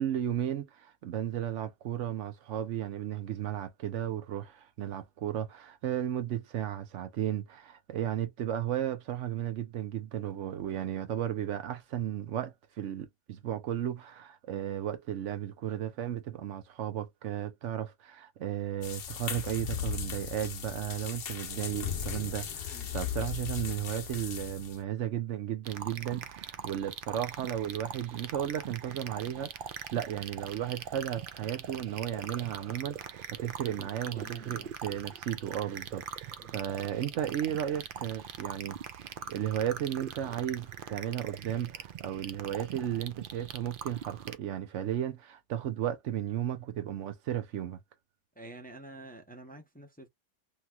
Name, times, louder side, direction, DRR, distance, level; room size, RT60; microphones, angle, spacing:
voice 1, 0.0-38.8 39.0-47.8, right 11 dB, 90° right, 1.0 m, -34 dB
sound 1, 18.8-24.8, left 8 dB, 60° left, 0.9 m, -37 dB
sound 2, 25.6-44.4, right 8 dB, 60° right, 0.6 m, -42 dB
voice 2, 33.6-34.7 36.4-36.6 48.3-50.1, right 1 dB, 10° left, 0.6 m, -48 dB
2.9 x 2.9 x 2.3 m
omnidirectional pair, 1.2 m